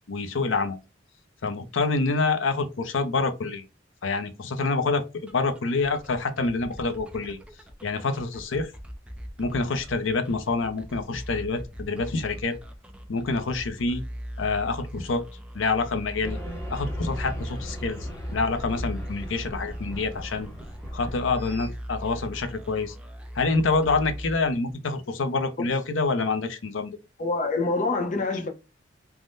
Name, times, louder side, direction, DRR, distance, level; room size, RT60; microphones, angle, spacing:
voice 1, 0.1-0.8 1.4-3.6 4.0-7.4 7.8-8.7 9.4-12.6 13.1-14.0 14.4-15.2 15.5-16.4 16.7-18.0 18.3-20.5 20.9-23.0 23.3-26.9, left 3 dB, 80° left, 0.6 m, -27 dB
sound 1, 5.3-24.9, equal, 5° right, 0.4 m, -40 dB
sound 2, 16.2-21.7, equal, 10° left, 0.8 m, -37 dB
voice 2, 27.2-28.5, left 3 dB, 40° left, 0.7 m, -26 dB
3.5 x 2.1 x 2.5 m
head